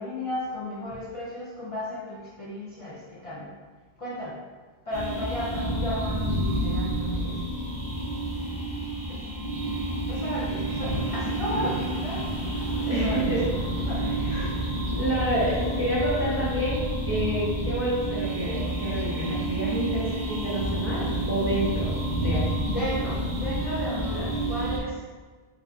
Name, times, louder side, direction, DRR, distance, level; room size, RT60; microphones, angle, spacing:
voice 1, 0.0-3.5 4.0-4.4 4.9-7.4 9.1-9.2 10.1-12.3 12.8-13.3 13.9-14.6 22.7-25.0, left 1 dB, 40° left, -9 dB, 0.6 m, -34 dB
sound 1, 4.9-24.8, right 1 dB, 40° right, 1.3 m, -29 dB
sound 2, 10.8-16.5, right 1 dB, 65° right, 1.0 m, -40 dB
voice 2, 12.9-13.4 14.2-14.5 14.9-22.4, right 1 dB, 10° right, -9 dB, 0.9 m, -29 dB
4.3 x 2.7 x 2.5 m, 1.4 s
omnidirectional pair, 1.1 m